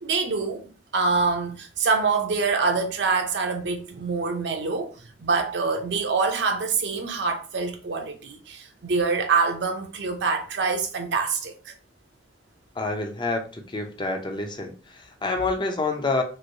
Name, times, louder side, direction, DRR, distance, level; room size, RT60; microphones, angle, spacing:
voice 1, 0.0-0.6 0.9-11.7, right 4 dB, 70° right, 0.6 m, -25 dB
voice 2, 12.8-16.2, left 3 dB, 25° left, 0.5 m, -28 dB
3.1 x 2.6 x 2.6 m
head